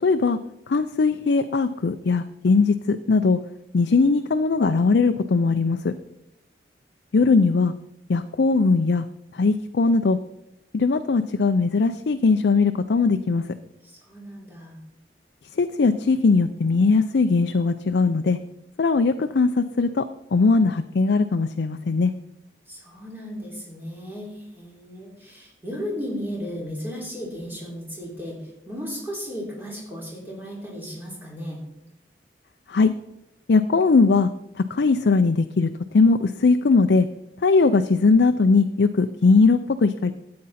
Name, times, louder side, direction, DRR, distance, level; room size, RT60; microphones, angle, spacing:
voice 1, 0.0-0.4 0.7-3.4 3.7-5.9 7.1-7.7 8.1-9.0 9.3-10.2 10.7-13.4 15.5-18.4 18.8-20.0 20.3-22.1 32.7-32.9 33.5-34.3 34.6-37.1 37.4-40.1, left 4 dB, 75° left, 8 dB, 0.5 m, -20 dB
voice 2, 13.8-14.8 22.7-31.6, equal, 10° right, -4 dB, 3.4 m, -35 dB
12.5 x 8.6 x 4.2 m, 0.83 s
head